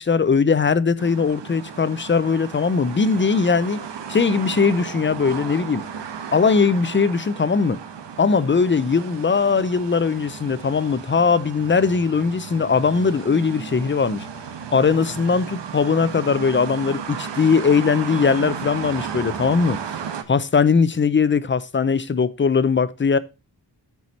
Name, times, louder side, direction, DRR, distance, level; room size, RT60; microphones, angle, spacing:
voice 1, 0.0-3.8 4.1-5.8 6.3-7.8 8.2-14.3 14.7-19.8 20.3-23.2, left 5 dB, 30° left, 0.6 m, -20 dB
sound 1, 1.0-20.2, right 7 dB, 90° right, 1.2 m, -34 dB
13.5 x 4.8 x 4.1 m
wide cardioid pair, 135°, 42 cm